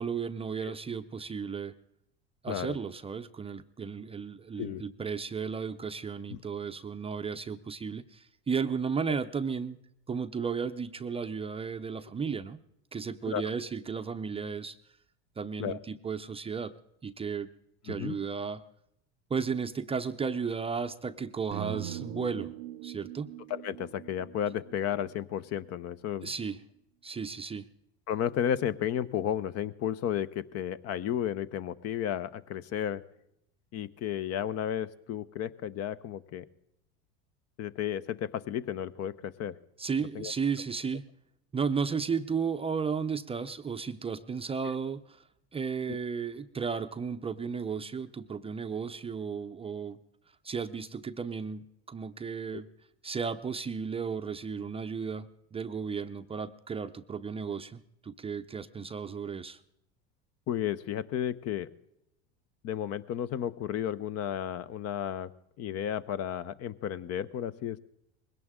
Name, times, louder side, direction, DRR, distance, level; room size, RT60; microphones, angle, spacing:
voice 1, 0.0-1.7 2.4-9.8 10.1-12.6 12.9-14.8 15.4-16.7 17.0-17.5 17.8-18.6 19.3-22.5 22.8-23.3 26.2-26.6 27.0-27.7 39.8-41.0 41.5-45.2 45.5-50.0 50.4-52.7 53.0-59.6, right 5 dB, 15° right, 9 dB, 0.6 m, -34 dB
voice 2, 2.5-2.8 4.6-4.8 6.3-6.4 13.3-13.5 15.6-15.8 17.9-18.2 23.5-26.3 28.1-33.0 33.7-36.4 37.6-39.6 40.1-40.3 52.5-52.6 60.5-61.7 62.6-65.3 65.6-67.8, left 10 dB, 45° left, 16 dB, 0.8 m, -33 dB
sound 1, 21.5-25.7, right 14 dB, 80° right, 0.7 m, -42 dB
21.0 x 18.0 x 3.7 m, 0.77 s
supercardioid pair, 105°, 34 cm